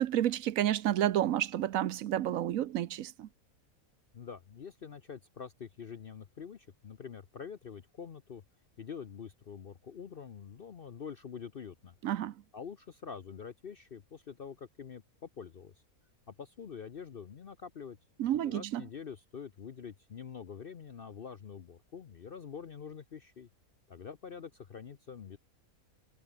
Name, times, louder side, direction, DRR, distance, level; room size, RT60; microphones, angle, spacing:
voice 1, 0.0-3.3 12.0-12.3 18.2-18.8, right 12 dB, 70° right, 1.1 m, -30 dB
voice 2, 4.1-8.4 8.8-11.9 12.5-15.7 16.3-18.0 18.3-23.5 23.9-25.4, left 6 dB, 45° left, 0.9 m, -46 dB
omnidirectional pair, 1.5 m